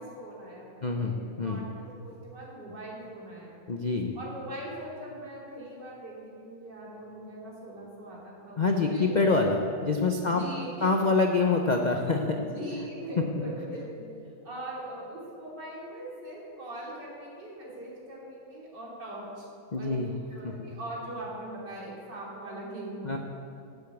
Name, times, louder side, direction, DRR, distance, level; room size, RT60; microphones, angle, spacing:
voice 1, 0.0-1.2 1.4-3.6 4.2-9.1 10.2-10.9 12.4-19.5 19.8-20.0 20.3-23.2, right 1 dB, 65° right, -5 dB, 3.8 m, -41 dB
voice 2, 0.8-1.6 3.7-4.1 8.6-10.4 10.8-12.4 19.7-20.1 20.4-20.7 23.0-23.2, left 3 dB, 65° left, 2 dB, 0.4 m, -26 dB
11.5 x 8.3 x 8.2 m, 2.6 s
omnidirectional pair, 2.0 m